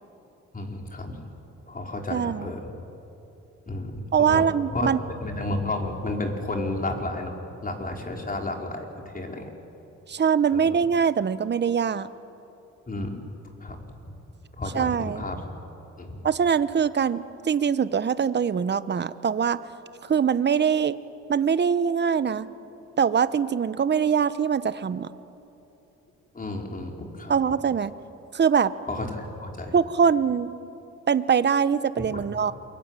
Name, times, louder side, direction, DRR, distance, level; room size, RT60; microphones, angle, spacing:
voice 1, 0.5-1.2 1.7-2.6 3.7-4.4 4.7-4.9 5.2-9.5 10.5-10.7 12.9-13.2 13.6-13.8 14.6-15.5 16.0-16.2 26.3-27.3 28.9-29.7 32.1-32.2, left 2 dB, 30° left, 2 dB, 4.7 m, -32 dB
voice 2, 2.1-2.5 4.1-5.0 10.1-12.1 14.7-15.2 16.2-19.6 20.1-21.0 21.3-22.5 23.0-25.1 27.3-27.9 28.3-28.7 29.7-30.5 31.1-32.5, right 7 dB, 35° right, 14 dB, 1.0 m, -23 dB
28.5 x 23.0 x 9.1 m, 2.9 s
cardioid pair, 90°, 30 cm